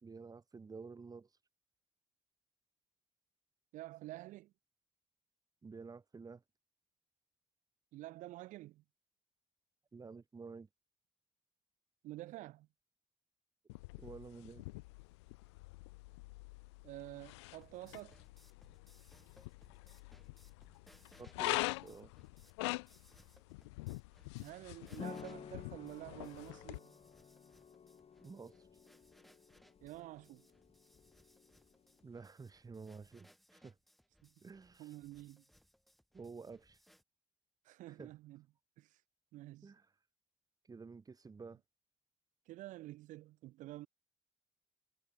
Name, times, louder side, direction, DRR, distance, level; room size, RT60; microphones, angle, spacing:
voice 1, 0.0-1.3 5.6-6.4 9.9-10.7 14.0-14.6 21.2-22.1 28.2-28.6 32.0-33.7 34.4-34.9 36.1-36.8 37.9-38.1 39.6-39.8 40.7-41.6, right 4 dB, 25° right, 0.8 m, -51 dB
voice 2, 3.7-4.5 7.9-8.8 12.0-12.7 16.8-18.2 24.4-27.0 29.8-30.5 34.2-34.3 34.8-35.4 37.7-38.4 38.8-38.9 39.3-39.7 42.5-43.9, right 17 dB, 60° right, 0.6 m, -49 dB
sound 1, 13.7-26.8, left 24 dB, 75° left, 0.4 m, -45 dB
sound 2, 17.3-37.0, equal, ahead, 6.1 m, -68 dB
sound 3, 25.0-32.3, left 7 dB, 45° left, 2.1 m, -53 dB
figure-of-eight pair, 40°, 14 cm